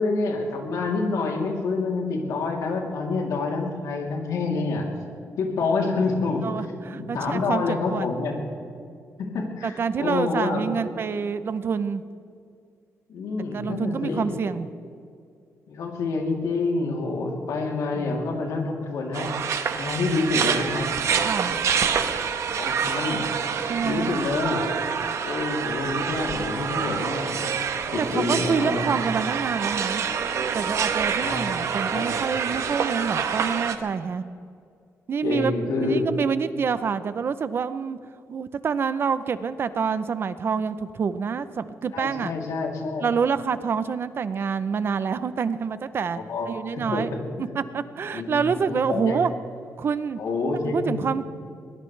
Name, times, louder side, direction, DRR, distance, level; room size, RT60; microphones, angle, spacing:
voice 1, 0.0-4.9 5.4-6.4 6.9-8.4 9.2-10.6 13.1-14.4 15.7-19.3 19.8-20.9 22.5-23.2 23.8-24.7 25.2-27.4 27.9-28.9 31.1-31.6 31.9-32.3 35.2-36.1 41.9-43.0 45.7-45.8 46.3-46.5 46.7-47.5 48.1-49.2 50.2-51.0, left 3 dB, 85° left, 0 dB, 3.0 m, -27 dB
voice 2, 6.4-8.1 9.6-12.0 13.5-14.7 18.0-18.2 21.2-21.6 23.7-24.2 28.0-30.0 30.5-34.2 35.1-38.0 38.3-42.3 43.0-46.2 46.5-47.1 47.4-49.3 49.8-50.2 50.7-51.2, right 6 dB, 45° right, 13 dB, 0.6 m, -27 dB
sound 1, 19.1-33.8, right 6 dB, 60° right, 1.0 m, -27 dB
22.0 x 19.5 x 3.3 m, 2.3 s
wide cardioid pair, 155°, 6 cm